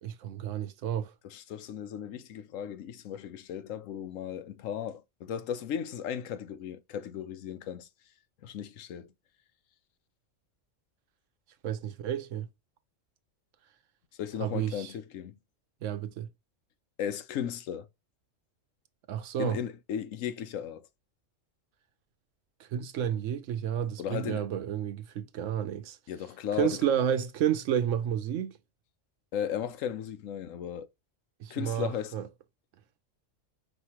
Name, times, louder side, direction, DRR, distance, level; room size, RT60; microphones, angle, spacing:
voice 1, 0.0-1.1 11.6-12.5 14.4-14.9 15.8-16.3 19.1-19.6 22.6-26.0 26.5-28.6 31.4-32.3, right 9 dB, 80° right, 1.0 m, -31 dB
voice 2, 1.2-7.9 8.4-9.1 14.2-15.4 17.0-17.9 19.4-20.8 24.0-24.5 26.1-26.8 29.3-30.9 31.5-32.2, left 9 dB, 90° left, 1.1 m, -36 dB
5.0 x 3.1 x 2.8 m
omnidirectional pair, 1.3 m